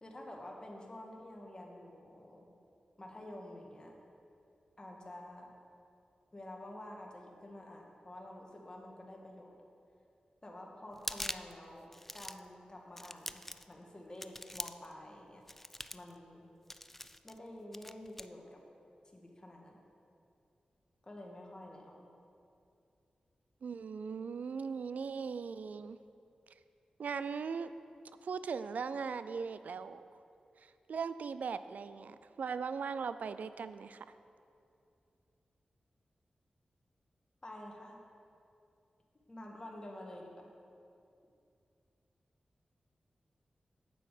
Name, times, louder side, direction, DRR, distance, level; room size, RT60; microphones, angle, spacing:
voice 1, 0.0-2.5 3.0-4.0 4.8-5.5 6.3-9.5 10.4-11.9 12.1-13.4 13.7-15.4 15.9-16.4 17.2-18.6 19.1-19.8 21.0-22.1 37.4-38.0 39.3-40.5, left 1 dB, 30° left, 0 dB, 1.7 m, -49 dB
sound 1, 10.9-11.6 11.9-12.5 13.0-13.7 14.2-14.9 15.5-16.1 16.7-17.4 17.7-18.3, left 1 dB, 10° left, 0.3 m, -43 dB
voice 2, 23.6-26.0 27.0-27.7 28.2-30.0 30.6-34.1, right 5 dB, 75° right, 13 dB, 0.3 m, -39 dB
8.5 x 7.5 x 5.0 m, 2.6 s
cardioid pair, 50°, 3 cm